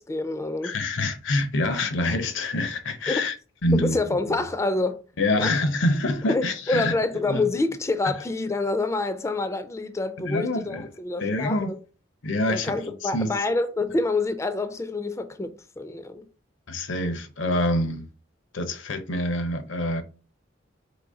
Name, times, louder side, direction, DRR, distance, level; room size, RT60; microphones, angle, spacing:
voice 1, 0.0-0.8 3.1-3.2 3.7-5.0 5.4-5.5 6.3-11.8 12.5-16.3, left 2 dB, 15° left, 0.3 m, -27 dB
voice 2, 0.6-3.4 3.6-4.0 5.2-6.9 7.2-7.4 10.2-10.9 11.2-11.7 12.2-13.3 16.7-18.0 18.5-20.0, left 1 dB, 80° left, 0.7 m, -26 dB
4.0 x 3.0 x 3.7 m
head